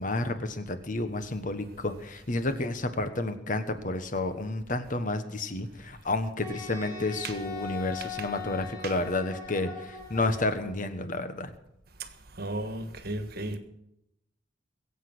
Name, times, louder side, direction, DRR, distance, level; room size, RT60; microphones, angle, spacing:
voice 1, 0.0-11.5, left 2 dB, 45° left, 1.3 m, -31 dB
Wind instrument woodwind instrument, 6.4-10.7, left 5 dB, 20° left, 4.0 m, -40 dB
voice 2, 12.4-13.6, right 1 dB, 55° right, 1.5 m, -34 dB
21.5 x 8.3 x 6.2 m
head